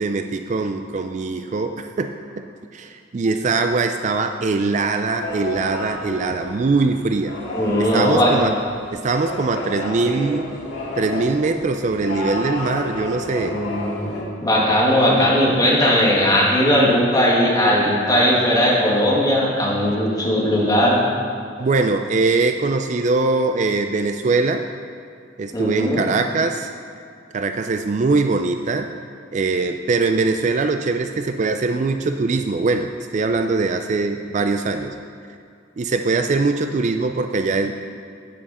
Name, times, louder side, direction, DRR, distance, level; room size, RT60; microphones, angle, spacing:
voice 1, 0.0-2.4 2.7-7.3 7.8-8.5 8.9-10.5 11.0-13.6 21.6-24.6 25.4-26.7 27.3-28.9 29.3-34.9 35.8-37.7, right 3 dB, 40° right, 6 dB, 0.4 m, -22 dB
sound 1, 5.2-14.2, left 1 dB, 85° left, 2.0 m, -31 dB
voice 2, 7.5-8.3 13.4-21.0 25.5-26.0, equal, 20° left, -5 dB, 2.1 m, -18 dB
10.5 x 9.2 x 4.2 m, 2.3 s
head